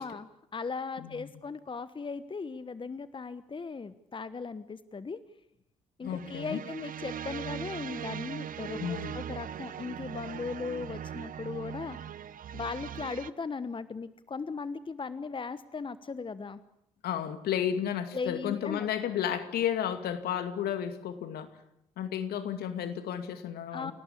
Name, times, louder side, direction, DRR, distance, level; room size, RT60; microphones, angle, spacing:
voice 1, 0.0-5.2 6.0-12.0 12.5-16.6 18.1-18.9 23.7-23.9, left 4 dB, 30° left, 14 dB, 1.1 m, -38 dB
voice 2, 6.0-6.6 8.8-9.1 17.0-21.5 22.0-23.9, left 9 dB, 65° left, 9 dB, 2.4 m, -32 dB
sound 1, 6.0-13.3, right 9 dB, 55° right, 1.0 m, -40 dB
28.0 x 18.0 x 8.6 m, 0.81 s
hypercardioid pair, 45°, 17 cm